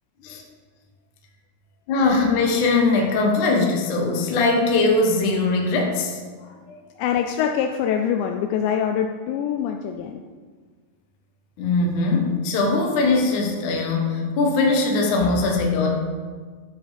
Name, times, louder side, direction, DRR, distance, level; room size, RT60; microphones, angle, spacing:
voice 1, 1.9-6.2 6.7-6.8 11.6-15.9, left 3 dB, 65° left, 0 dB, 2.0 m, -21 dB
voice 2, 7.0-10.2, left 8 dB, 90° left, 4 dB, 2.5 m, -24 dB
13.0 x 6.1 x 5.1 m, 1.5 s
omnidirectional pair, 5.6 m